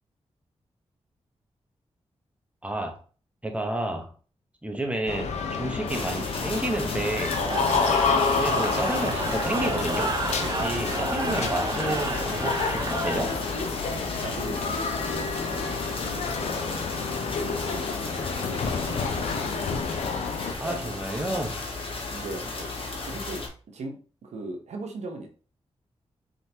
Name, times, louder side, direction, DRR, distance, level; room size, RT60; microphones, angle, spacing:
voice 1, 2.6-3.0 3.4-4.1 4.6-7.4 8.1-10.1 10.4-13.4 20.6-21.6, right 1 dB, 10° right, 1.0 m, -31 dB
sound 1, 5.1-20.5, left 5 dB, 90° left, 0.6 m, -29 dB
sound 2, 5.9-23.5, left 3 dB, 55° left, 1.2 m, -35 dB
Cheering / Crowd, 7.2-13.6, right 3 dB, 35° right, 0.9 m, -31 dB
voice 2, 14.2-16.7 17.4-19.1 20.4-21.0 22.1-23.4 23.7-25.3, right 3 dB, 85° right, 0.9 m, -39 dB
4.3 x 3.8 x 2.8 m
cardioid pair, 65°, 11 cm